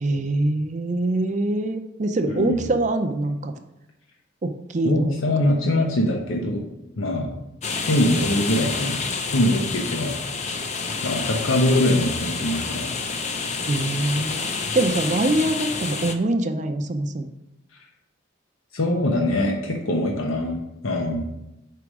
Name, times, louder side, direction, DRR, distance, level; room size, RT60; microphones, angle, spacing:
voice 1, 0.0-3.5 4.4-5.4 13.6-14.5 14.7-17.3, right 2 dB, 35° right, 7 dB, 0.5 m, -24 dB
voice 2, 2.3-2.6 4.8-6.6 7.0-7.3 7.8-9.0 9.3-10.1 11.0-12.9 18.7-21.3, left 1 dB, 90° left, 1 dB, 0.9 m, -23 dB
sound 1, 7.6-16.1, left 4 dB, 35° left, 0.5 m, -28 dB
4.9 x 4.7 x 6.1 m, 0.90 s
head